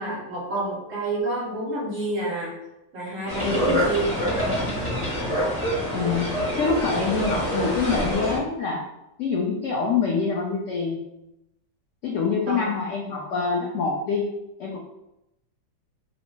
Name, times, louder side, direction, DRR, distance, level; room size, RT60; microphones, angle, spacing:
voice 1, 0.0-2.5 2.9-4.6 12.5-12.7 13.0-13.4, right 2 dB, 50° right, -4 dB, 1.2 m, -29 dB
sound 1, 3.3-8.4, equal, 10° left, 1.0 m, -26 dB
voice 2, 3.4-3.8 5.9-8.8 9.2-11.0 12.0-14.2 14.6-14.8, left 5 dB, 85° left, -2 dB, 0.6 m, -25 dB
3.1 x 2.5 x 3.0 m, 0.88 s
omnidirectional pair, 1.8 m